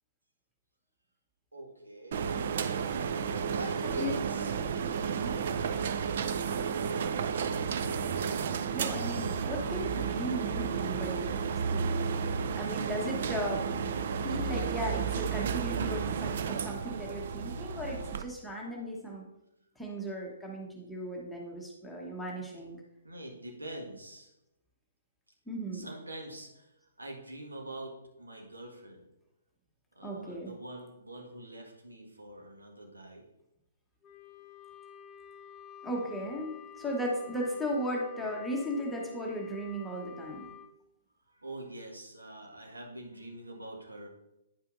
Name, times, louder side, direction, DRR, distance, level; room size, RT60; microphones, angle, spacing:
voice 1, 1.5-2.2 3.3-4.9 23.0-24.3 25.7-26.7 27.0-29.1 29.9-33.2 41.4-44.1, right 1 dB, 85° right, 0 dB, 1.6 m, -45 dB
sound 1, 2.1-18.2, right 6 dB, 50° right, 0.4 m, -32 dB
voice 2, 3.8-4.2 5.0-5.4 8.7-11.9 12.5-13.7 14.0-19.3 19.8-22.8 25.5-25.9 30.0-30.5 35.8-40.5, equal, 5° left, -3 dB, 1.1 m, -36 dB
Wind instrument woodwind instrument, 34.0-40.7, left 9 dB, 25° left, 0.6 m, -50 dB
9.7 x 5.5 x 2.6 m, 0.90 s
figure-of-eight pair, 125°, 0 cm